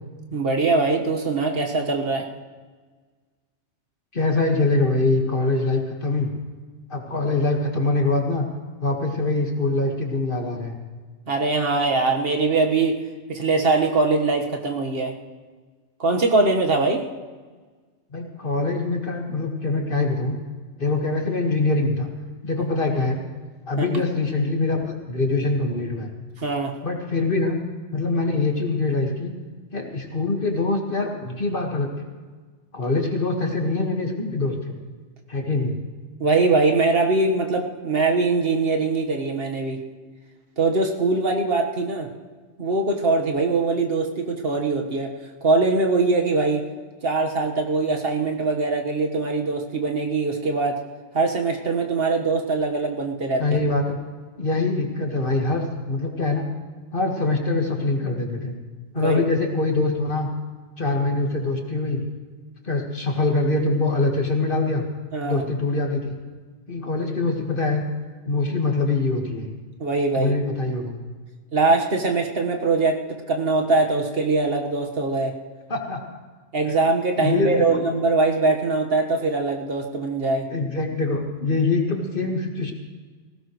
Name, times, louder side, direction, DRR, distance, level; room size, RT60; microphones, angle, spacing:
voice 1, 0.3-2.3 11.3-13.0 13.3-15.2 16.0-17.1 23.8-24.0 26.4-26.8 36.2-39.8 40.6-42.1 42.6-45.1 45.4-46.6 47.0-50.8 51.1-53.6 59.0-59.2 65.1-65.4 69.8-70.4 71.5-75.4 76.5-80.5, right 3 dB, 55° right, 2 dB, 1.7 m, -22 dB
voice 2, 4.1-6.3 6.9-8.5 8.8-10.8 18.1-20.4 20.8-22.1 22.4-23.2 23.7-26.1 26.8-27.6 27.9-29.3 29.7-31.9 32.7-34.7 35.3-35.7 53.4-54.0 54.4-56.4 56.9-58.5 58.9-60.3 60.8-62.1 62.6-64.9 65.2-66.1 66.7-67.8 68.3-69.5 70.1-71.0 75.7-76.0 76.7-76.8 77.2-77.8 80.5-82.7, left 3 dB, 45° left, 1 dB, 2.0 m, -24 dB
19.5 x 16.5 x 3.2 m, 1.4 s
omnidirectional pair, 1.2 m